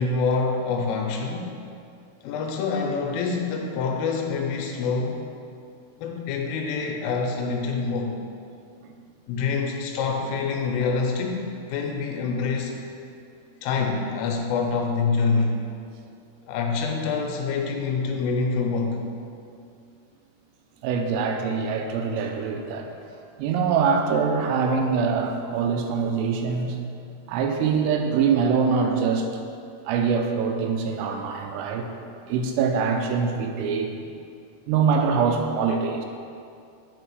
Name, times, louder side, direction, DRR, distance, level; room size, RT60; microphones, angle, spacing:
voice 1, 0.0-1.5 2.2-5.3 6.0-8.2 9.3-11.4 11.7-12.7 13.6-15.6 16.4-19.0, left 4 dB, 85° left, 1 dB, 3.2 m, -26 dB
voice 2, 20.8-23.1 23.4-26.8 27.3-29.3 29.9-31.9 32.3-33.9 34.7-36.1, right 5 dB, 90° right, 4 dB, 3.3 m, -24 dB
8.9 x 5.5 x 4.6 m, 2.4 s
omnidirectional pair, 5.8 m